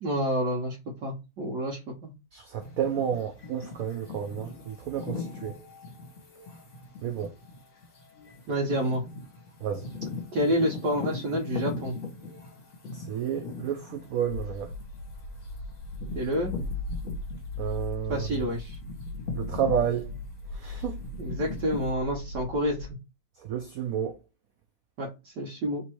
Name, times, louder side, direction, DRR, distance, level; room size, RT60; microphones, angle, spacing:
voice 1, 0.0-2.1 8.5-9.0 10.3-12.0 16.1-16.5 18.1-18.8 21.2-22.9 25.0-25.8, equal, 60° right, 1.4 m, -29 dB
voice 2, 2.3-5.6 7.0-7.3 9.6-9.9 12.9-14.7 17.6-18.4 19.3-20.1 20.5-21.0 23.4-24.2, right 8 dB, 85° right, 0.7 m, -31 dB
sound 1, 2.6-17.7 18.1-21.9, left 3 dB, 45° left, 1.6 m, -40 dB
sound 2, 14.2-22.9, left 3 dB, 65° left, 1.2 m, -37 dB
3.5 x 2.9 x 4.4 m
omnidirectional pair, 2.1 m